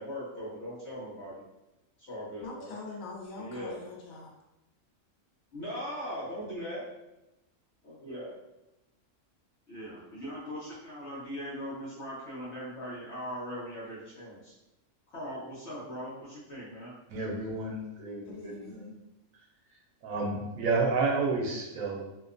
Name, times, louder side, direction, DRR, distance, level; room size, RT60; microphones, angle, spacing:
voice 1, 0.0-1.4 2.1-2.7 3.4-3.8 5.5-6.8 7.8-8.3 9.7-14.5 15.1-16.9, equal, 60° left, -8 dB, 0.9 m, -39 dB
voice 2, 2.4-4.3 18.3-18.9, left 3 dB, 85° left, -1 dB, 1.1 m, -43 dB
voice 3, 17.1-18.9 20.0-22.0, right 3 dB, 90° right, 0 dB, 1.0 m, -31 dB
2.7 x 2.2 x 2.4 m, 0.94 s
omnidirectional pair, 1.4 m